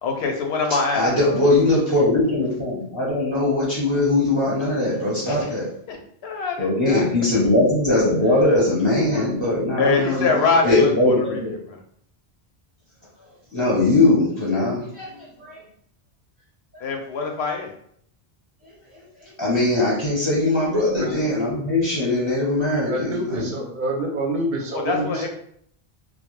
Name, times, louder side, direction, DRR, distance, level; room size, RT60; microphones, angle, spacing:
voice 1, 0.0-1.3 5.3-5.5 5.9-6.0 6.2-7.0 9.8-11.1 11.7-11.8 16.8-17.7 24.7-25.3, left 4 dB, 85° left, 2 dB, 0.8 m, -24 dB
voice 2, 0.9-5.7 6.6-10.3 10.6-11.5 13.5-15.6 19.4-23.5, left 2 dB, 20° left, -8 dB, 0.6 m, -20 dB
voice 3, 22.9-25.3, right 1 dB, 60° right, 1 dB, 0.6 m, -27 dB
2.3 x 2.0 x 3.0 m, 0.66 s
omnidirectional pair, 1.0 m